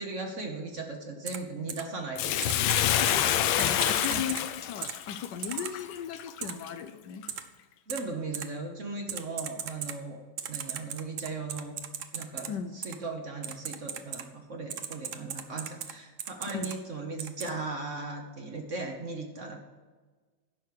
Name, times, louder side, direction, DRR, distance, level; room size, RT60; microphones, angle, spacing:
voice 1, 0.0-2.7 4.1-4.3 7.9-10.2 10.5-11.7 12.1-19.6, right 3 dB, 45° right, 3 dB, 1.2 m, -38 dB
Typing, 1.3-1.4 1.7-1.8 2.4-3.1 3.6-4.4 4.8-4.9 5.4-5.7 6.4-6.5 7.3-7.4 7.9-8.0 8.3-8.4 9.1-9.9 10.4-12.5 12.8-13.0 13.4-14.2 14.7-15.9 16.2-16.7 17.2-17.5, right 8 dB, 65° right, 0.8 m, -36 dB
Bathtub (filling or washing), 2.2-6.7 7.2-7.3, left 11 dB, 85° left, 1.4 m, -27 dB
voice 2, 3.0-7.2 12.5-12.7 16.5-16.7, left 8 dB, 70° left, 9 dB, 1.1 m, -37 dB
10.5 x 6.2 x 6.5 m, 1.4 s
omnidirectional pair, 2.1 m